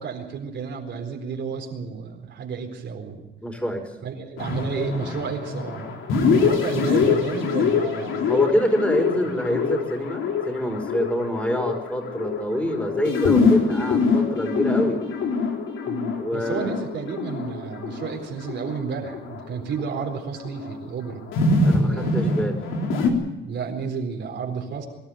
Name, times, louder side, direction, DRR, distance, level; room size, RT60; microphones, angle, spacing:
voice 1, 0.0-3.2 4.0-5.9 6.3-8.3 9.1-9.2 15.9-21.2 21.8-22.4 23.4-24.9, right 5 dB, 65° right, 2 dB, 4.1 m, -31 dB
voice 2, 3.4-3.9 8.3-15.0 16.2-16.8 21.6-22.6, equal, 5° left, 5 dB, 5.2 m, -26 dB
sound 1, 4.4-20.7 21.1-23.1, left 4 dB, 80° left, 3.5 m, -24 dB
24.0 x 12.5 x 9.2 m, 0.99 s
cardioid pair, 90°, 20 cm